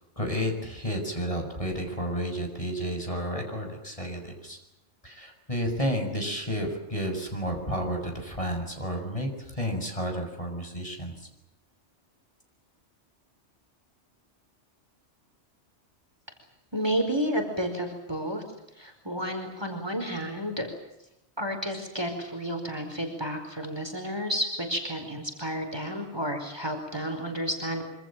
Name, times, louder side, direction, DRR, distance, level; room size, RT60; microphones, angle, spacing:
voice 1, 0.2-4.6 5.0-11.1, equal, 30° left, 3 dB, 7.0 m, -31 dB
voice 2, 16.7-18.4 18.8-20.7 21.4-27.8, equal, 20° right, 5 dB, 5.0 m, -31 dB
26.5 x 25.5 x 7.6 m, 0.85 s
omnidirectional pair, 1.2 m